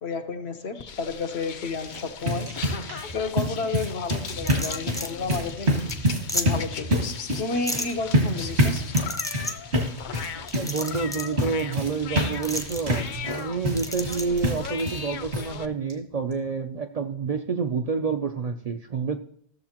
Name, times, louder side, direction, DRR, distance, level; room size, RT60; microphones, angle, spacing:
voice 1, 0.0-2.5 3.1-5.8 6.3-7.0 7.4-8.8, left 4 dB, 75° left, 6 dB, 1.2 m, -31 dB
sound 1, 0.8-15.7, left 7 dB, 55° left, 0.6 m, -39 dB
sound 2, 1.7-15.1 15.3-15.5 15.9-16.0 16.3-16.4, equal, 75° right, 2.1 m, -27 dB
sound 3, 4.3-5.1 5.5-5.6 5.9-6.0 6.3-6.5 7.7-7.9 8.9-9.5 10.5-11.3 12.4-12.8 13.8-14.2, left 1 dB, 5° left, 0.5 m, -31 dB
voice 2, 10.5-19.2, right 5 dB, 50° right, 6 dB, 0.5 m, -28 dB
15.0 x 7.1 x 2.9 m, 0.65 s
omnidirectional pair, 1.1 m